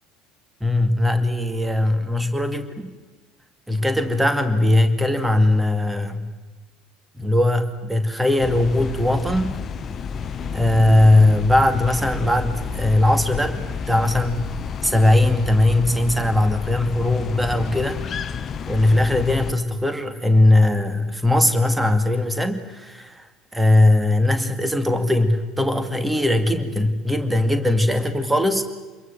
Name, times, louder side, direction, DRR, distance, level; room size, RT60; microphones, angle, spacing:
voice 1, 0.6-2.6 3.7-6.3 7.2-9.6 10.5-14.5 14.8-18.0 18.7-23.3 23.5-28.6, left 1 dB, 5° right, 9 dB, 2.3 m, -19 dB
sound 1, 8.4-19.5, left 6 dB, 35° left, 0.9 m, -30 dB
27.0 x 22.0 x 7.7 m, 1.2 s
figure-of-eight pair, 65°, 0 cm